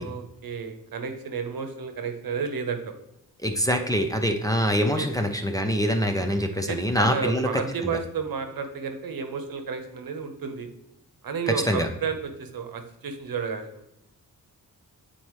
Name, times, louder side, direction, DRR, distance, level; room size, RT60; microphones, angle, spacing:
voice 1, 0.0-3.0 4.9-5.1 6.5-10.7 11.2-13.8, right 6 dB, 75° right, 6 dB, 0.9 m, -32 dB
voice 2, 3.4-7.5 11.7-11.9, equal, 10° left, 3 dB, 0.5 m, -24 dB
9.0 x 4.2 x 3.1 m, 0.83 s
wide cardioid pair, 130°, 36 cm